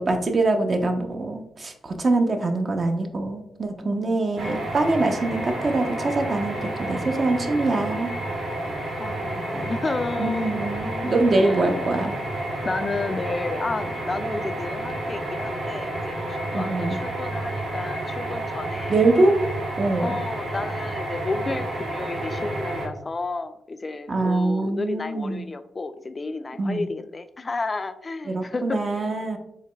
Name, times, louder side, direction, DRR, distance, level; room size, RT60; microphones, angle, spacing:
voice 1, 0.0-8.1 10.2-12.2 16.5-17.0 18.9-19.4 19.8-20.2 24.1-25.5 26.6-26.9 28.3-29.4, right 2 dB, 45° right, 5 dB, 0.6 m, -24 dB
voice 2, 3.8-4.2 5.1-5.2 6.2-6.6 9.0-11.8 12.6-18.9 20.0-29.1, left 3 dB, 35° left, 9 dB, 0.3 m, -32 dB
sound 1, 4.4-22.9, right 1 dB, 65° right, 1.1 m, -30 dB
4.6 x 3.1 x 2.2 m, 0.79 s
supercardioid pair, 55°, 0 cm